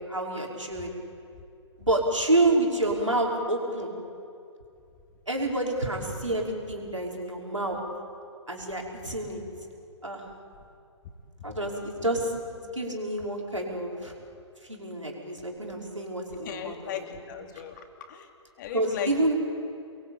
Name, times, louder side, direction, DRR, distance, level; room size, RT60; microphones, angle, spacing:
voice 1, 0.1-0.9 1.8-3.9 5.3-7.8 8.5-9.4 10.0-10.2 11.4-14.1 14.6-17.0 18.7-19.3, right 1 dB, 90° right, 0 dB, 5.3 m, -28 dB
voice 2, 16.4-18.3 18.6-19.3, left 9 dB, 40° left, 5 dB, 2.8 m, -37 dB
30.0 x 22.5 x 8.7 m, 2.5 s
figure-of-eight pair, 125°, 16 cm